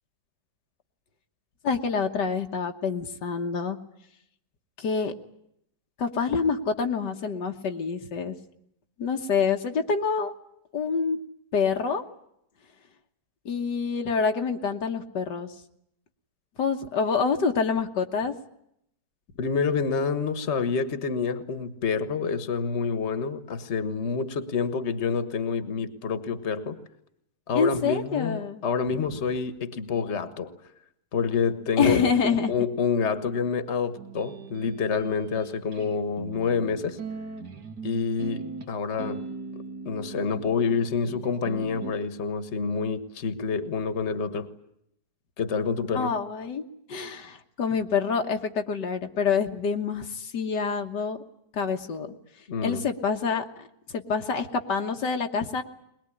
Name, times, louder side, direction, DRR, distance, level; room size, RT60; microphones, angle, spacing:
voice 1, 1.6-3.8 4.8-5.1 6.0-8.4 9.0-10.3 10.7-11.2 11.5-12.0 13.5-15.5 16.6-18.3 27.5-28.6 31.8-32.5 45.9-51.2 51.5-52.1 52.6-55.6, left 5 dB, 85° left, 2.0 m, -27 dB
voice 2, 19.4-26.8 27.5-30.5 31.1-32.1 32.5-37.0 37.8-39.2 39.8-44.5 45.4-46.1 52.5-52.8, left 5 dB, 45° left, 1.6 m, -28 dB
sound 1, 34.0-41.9, right 4 dB, 70° right, 2.1 m, -40 dB
21.5 x 21.0 x 9.9 m
omnidirectional pair, 1.8 m